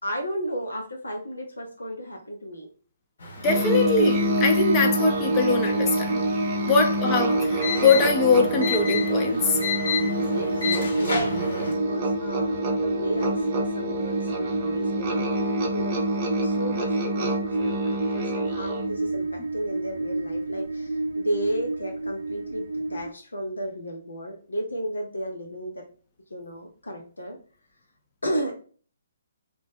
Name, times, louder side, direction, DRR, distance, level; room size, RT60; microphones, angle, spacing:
voice 1, 0.0-2.7 6.5-6.8 10.3-16.0 16.4-25.8 26.3-27.4 28.2-28.5, right 1 dB, 80° left, 0.6 m, -33 dB
sound 1, 3.2-11.7, left 5 dB, 60° left, 0.9 m, -33 dB
voice 2, 3.4-6.2 6.7-9.6, left 4 dB, 25° left, 0.6 m, -22 dB
Musical instrument, 3.4-19.0, equal, 30° right, 0.7 m, -29 dB
sound 2, 3.7-23.1, right 2 dB, 65° right, 0.3 m, -28 dB
2.8 x 2.0 x 3.5 m
figure-of-eight pair, 135°, 0 cm